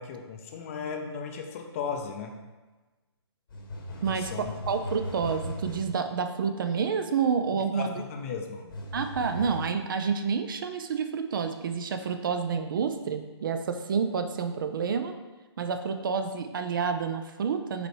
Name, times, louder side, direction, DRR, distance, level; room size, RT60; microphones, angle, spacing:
voice 1, 0.0-2.3 4.1-4.6 7.5-8.8, left 6 dB, 30° left, 3 dB, 0.5 m, -36 dB
sound 1, 3.5-6.0 8.7-9.6, left 1 dB, 50° left, 0.9 m, -38 dB
voice 2, 4.0-7.9 8.9-15.1 15.6-17.9, right 6 dB, 50° right, 8 dB, 0.4 m, -29 dB
4.9 x 3.2 x 3.1 m, 1.2 s
figure-of-eight pair, 140°, 14 cm